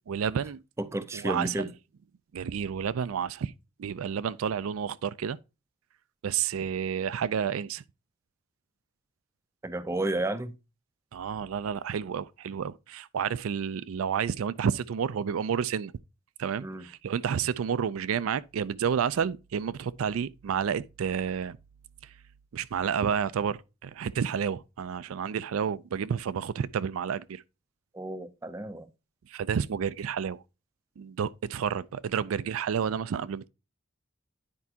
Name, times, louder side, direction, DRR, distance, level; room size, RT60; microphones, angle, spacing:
voice 1, 0.1-0.6 1.1-1.7 2.3-3.5 3.8-5.4 6.2-7.8 11.1-15.9 16.4-21.6 22.0-22.1 22.5-27.4 29.3-30.4 31.0-33.5, right 7 dB, 85° right, 0.4 m, -30 dB
voice 2, 0.8-1.7 9.6-10.6 16.6-16.9 27.9-28.9, right 1 dB, 15° right, 0.4 m, -32 dB
9.7 x 4.6 x 2.7 m
head